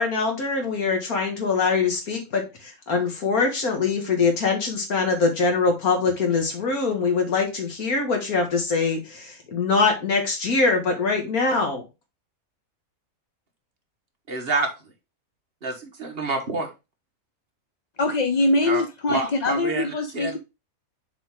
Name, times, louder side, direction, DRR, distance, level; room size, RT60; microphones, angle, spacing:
voice 1, 0.0-11.8, left 4 dB, 85° left, 2.2 m, -23 dB
voice 2, 14.3-14.7 15.6-16.7 18.6-18.8 19.1-20.3, right 3 dB, 45° right, 1.4 m, -28 dB
voice 3, 18.0-20.4, left 2 dB, 55° left, 0.4 m, -23 dB
6.9 x 4.2 x 3.7 m
omnidirectional pair, 1.5 m